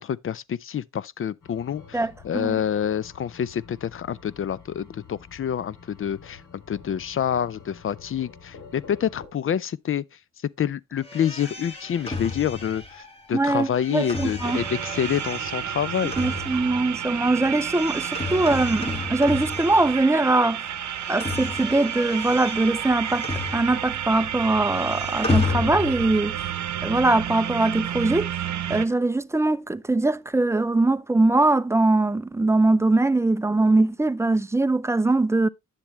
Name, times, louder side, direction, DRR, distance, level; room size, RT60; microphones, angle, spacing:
voice 1, 0.0-6.4 6.7-10.0 10.6-16.1, left 9 dB, 45° left, 0.5 m, -27 dB
sound 1, 1.4-9.3, left 6 dB, 85° left, 2.8 m, -48 dB
voice 2, 1.9-2.6 13.3-14.6 16.2-20.7 21.1-26.4 26.8-28.3 28.7-35.5, right 2 dB, 10° right, 0.4 m, -22 dB
sound 2, 11.0-20.3 20.6-24.1 24.3-26.2, left 3 dB, 20° left, 2.3 m, -32 dB
sound 3, 14.4-28.9, right 10 dB, 70° right, 0.8 m, -31 dB
9.9 x 7.1 x 3.0 m
cardioid pair, 80°, 30 cm